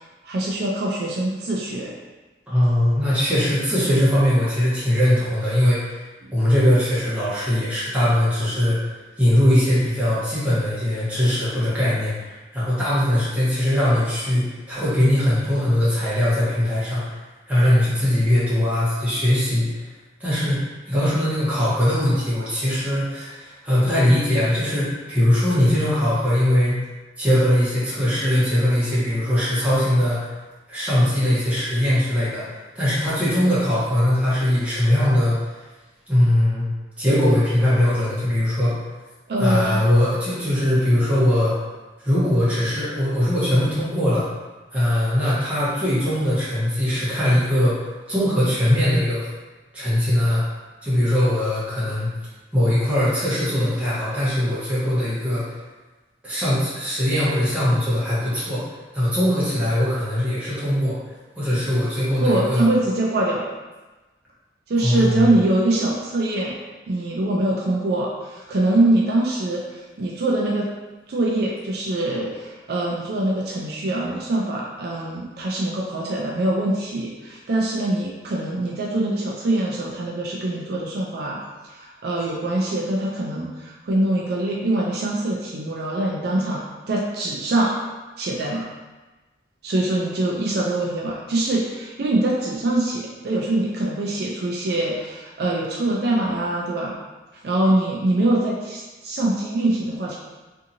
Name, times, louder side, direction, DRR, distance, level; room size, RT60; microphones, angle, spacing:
voice 1, 0.0-1.9 6.2-6.3 39.3-39.8 62.2-63.4 64.7-66.5 66.9-70.7 71.1-87.7 88.2-88.7 89.6-97.0 97.4-100.1, right 1 dB, 55° right, -3 dB, 0.4 m, -23 dB
voice 2, 2.5-6.0 6.3-8.8 9.2-17.0 17.5-19.9 20.2-26.8 27.2-30.3 30.7-35.6 36.1-36.7 37.0-38.8 39.4-41.5 42.0-44.2 44.7-49.3 49.7-50.4 50.8-52.1 52.5-55.6 56.2-58.6 58.9-62.7 64.8-65.3, left 1 dB, 5° right, -11 dB, 0.9 m, -21 dB
2.7 x 2.6 x 2.6 m, 1.2 s
head